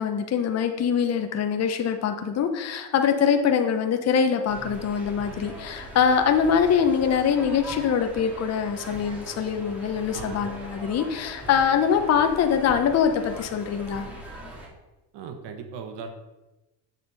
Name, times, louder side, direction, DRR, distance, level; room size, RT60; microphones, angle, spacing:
voice 1, 0.0-14.1, left 7 dB, 30° left, 6 dB, 0.8 m, -23 dB
sound 1, 4.5-14.7, right 1 dB, 5° right, 2.1 m, -41 dB
voice 2, 15.1-16.1, right 6 dB, 55° right, 5 dB, 1.1 m, -38 dB
7.0 x 4.2 x 5.3 m, 1.0 s
supercardioid pair, 100°, 49 cm